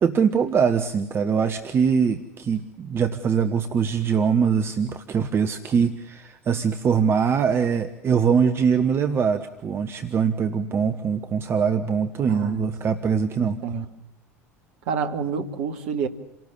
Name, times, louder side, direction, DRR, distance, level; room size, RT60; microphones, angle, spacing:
voice 1, 0.0-13.6, right 6 dB, 30° right, 8 dB, 1.5 m, -22 dB
voice 2, 12.3-12.7 13.4-13.9 14.9-16.1, right 6 dB, 55° right, 7 dB, 2.3 m, -28 dB
29.0 x 18.5 x 8.4 m, 0.82 s
figure-of-eight pair, 70°, 8 cm